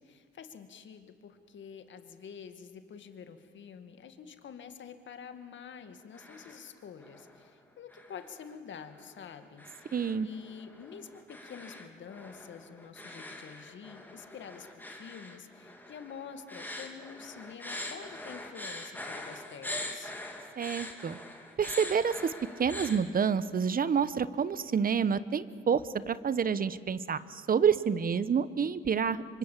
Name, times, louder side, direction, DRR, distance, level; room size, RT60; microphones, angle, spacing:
voice 1, 0.0-20.1, left 7 dB, 65° left, 9 dB, 2.1 m, -48 dB
sound 1, 5.9-6.7 7.0-7.5 7.9-23.0, left 1 dB, 10° left, 3.4 m, -44 dB
voice 2, 9.9-10.3 20.6-21.2 21.6-22.3 22.6-29.4, right 6 dB, 45° right, 16 dB, 1.0 m, -28 dB
26.0 x 24.5 x 7.4 m, 2.2 s
cardioid pair, 85°, 20 cm